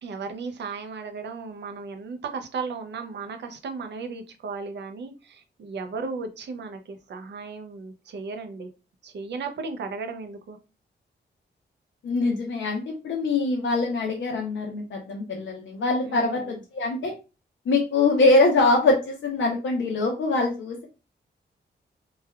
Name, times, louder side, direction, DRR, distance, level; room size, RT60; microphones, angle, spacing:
voice 1, 0.0-8.7 9.0-10.6 16.1-16.6, right 4 dB, 70° right, 6 dB, 0.5 m, -35 dB
voice 2, 12.0-17.1 17.7-20.8, left 3 dB, 85° left, 1 dB, 0.6 m, -23 dB
3.2 x 2.2 x 2.2 m, 0.30 s
wide cardioid pair, 180°, 19 cm